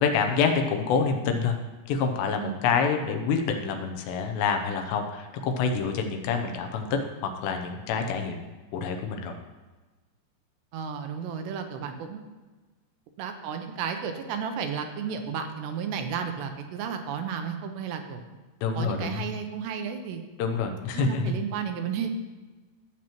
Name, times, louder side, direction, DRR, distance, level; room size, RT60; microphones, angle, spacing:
voice 1, 0.0-1.6 1.9-8.4 8.7-9.4 18.6-19.2 20.4-21.4, left 5 dB, 80° left, 5 dB, 2.9 m, -27 dB
voice 2, 10.7-12.2 13.2-18.2 18.7-20.2 20.9-22.1, right 7 dB, 80° right, 6 dB, 2.8 m, -33 dB
14.5 x 7.3 x 3.0 m, 1.2 s
omnidirectional pair, 5.2 m